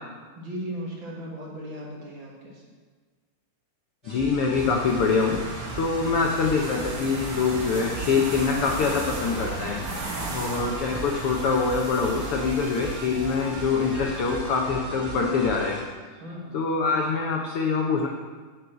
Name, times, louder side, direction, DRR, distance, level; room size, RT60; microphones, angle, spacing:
voice 1, 0.4-2.7 10.1-10.5 16.2-16.6, equal, 45° right, -3 dB, 1.9 m, -37 dB
sound 1, 4.0-15.8, right 1 dB, 25° right, 2.5 m, -38 dB
voice 2, 4.1-5.4 5.7-9.8 10.3-15.8 16.5-18.1, left 5 dB, 75° left, 0 dB, 1.3 m, -24 dB
sound 2, 4.5-14.7, right 3 dB, 75° right, 3.0 m, -36 dB
8.1 x 6.3 x 7.9 m, 1.4 s
omnidirectional pair, 3.7 m